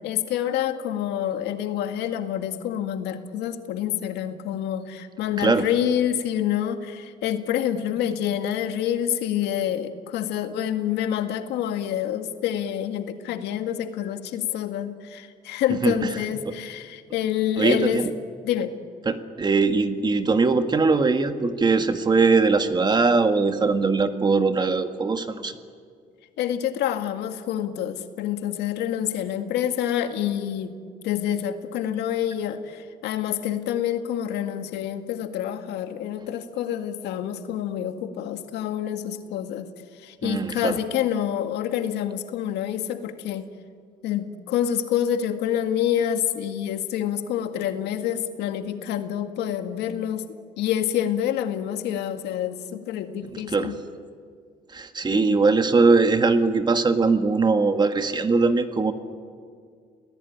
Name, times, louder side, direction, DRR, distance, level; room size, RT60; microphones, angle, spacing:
voice 1, 0.0-18.0 18.4-18.7 26.4-30.8 31.0-43.5 44.0-50.3 50.6-53.8 55.1-55.4, left 10 dB, 85° left, 7 dB, 2.0 m, -27 dB
voice 2, 17.6-18.1 19.1-25.5 40.2-40.7 53.5-53.7 54.7-58.9, right 4 dB, 25° right, 8 dB, 1.8 m, -21 dB
29.0 x 19.0 x 9.5 m, 2.1 s
cardioid pair, 110°, 17 cm